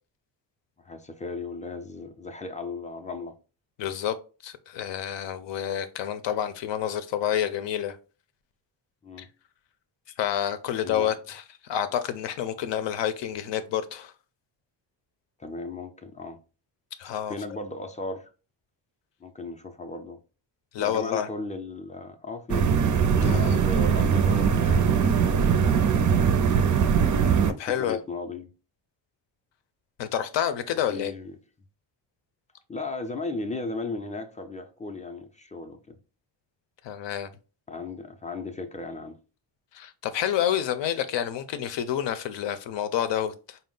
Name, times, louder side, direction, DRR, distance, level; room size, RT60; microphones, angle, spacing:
voice 1, 0.8-3.4 9.0-9.3 10.8-11.1 15.4-16.4 17.3-18.3 19.2-20.2 20.8-22.7 23.2-26.0 27.6-28.5 30.9-31.4 32.7-36.0 37.7-39.2, left 3 dB, 15° left, 0.4 m, -36 dB
voice 2, 3.8-4.2 4.4-8.0 9.2-9.3 10.2-14.1 17.0-17.4 20.7-21.3 23.3-23.6 27.6-28.0 30.0-31.1 36.8-37.3 39.7-43.6, left 10 dB, 70° left, 0.6 m, -29 dB
sound 1, 22.5-27.5, right 6 dB, 45° right, 0.5 m, -21 dB
4.3 x 2.0 x 3.7 m
cardioid pair, 105°, 44 cm